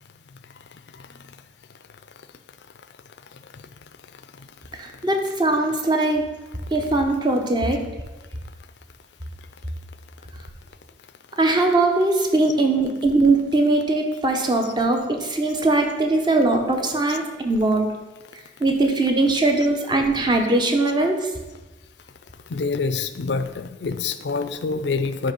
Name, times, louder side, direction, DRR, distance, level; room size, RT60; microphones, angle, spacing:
voice 1, 4.7-6.2 6.7-7.9 11.4-17.9 18.6-21.3, right 2 dB, 25° right, 3 dB, 0.8 m, -20 dB
voice 2, 22.5-25.3, left 4 dB, 65° left, 10 dB, 0.5 m, -26 dB
9.6 x 3.3 x 5.4 m, 1.2 s
head